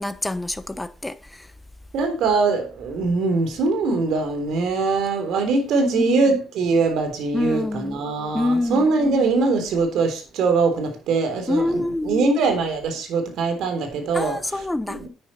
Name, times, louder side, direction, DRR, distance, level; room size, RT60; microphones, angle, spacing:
voice 1, 0.0-1.5 5.9-6.3 7.3-8.0 8.3-8.9 11.5-12.4 14.1-15.0, left 2 dB, 10° left, 1.0 m, -26 dB
voice 2, 1.9-15.1, right 4 dB, 80° right, 3.7 m, -22 dB
11.0 x 9.6 x 4.4 m
cardioid pair, 90°, 0 cm